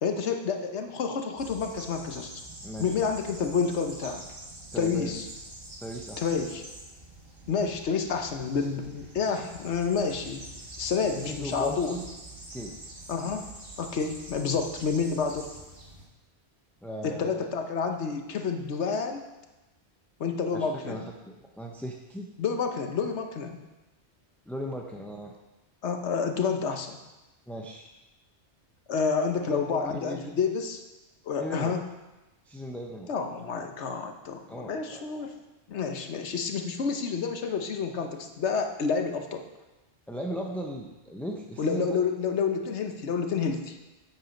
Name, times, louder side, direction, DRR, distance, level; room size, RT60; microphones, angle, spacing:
voice 1, 0.0-2.3 2.8-4.2 4.8-5.3 6.2-6.6 7.5-10.5 10.8-12.0 13.1-13.5 13.8-15.5 17.0-19.2 20.2-21.0 22.4-23.6 25.8-27.0 28.9-30.8 31.3-31.8 33.1-35.3 35.7-39.4 41.6-43.8, left 5 dB, 75° left, 5 dB, 1.2 m, -29 dB
sound 1, 1.4-16.0, right 1 dB, 50° right, 1.9 m, -45 dB
voice 2, 2.6-2.9 4.7-5.5 5.8-6.5 11.2-12.1 12.5-12.8 16.8-17.4 20.5-22.3 24.5-25.4 27.5-27.9 29.4-30.3 31.4-31.7 32.5-33.1 34.5-35.0 40.1-42.0, equal, ahead, 0 dB, 0.5 m, -37 dB
8.3 x 7.8 x 5.2 m, 1.0 s
omnidirectional pair, 1.2 m